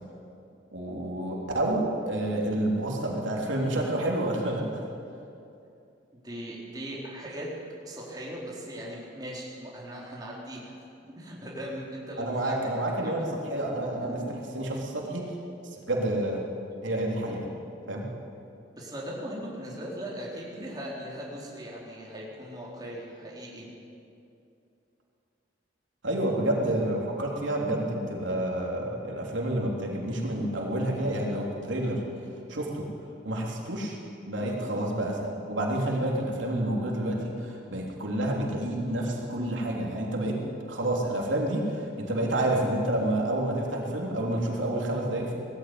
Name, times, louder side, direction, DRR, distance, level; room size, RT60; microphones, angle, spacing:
voice 1, 0.7-4.6 12.2-14.2 14.5-15.2 15.6-16.4 16.8-17.5 17.9-18.0 26.0-32.0 32.5-32.8 33.2-34.0 34.3-40.4 40.7-45.4, right 1 dB, 85° right, -1 dB, 3.5 m, -29 dB
voice 2, 6.2-7.5 7.8-13.4 14.1-14.2 18.7-23.7 34.4-34.5, equal, 20° right, -4 dB, 4.2 m, -39 dB
19.5 x 15.0 x 9.5 m, 2.6 s
head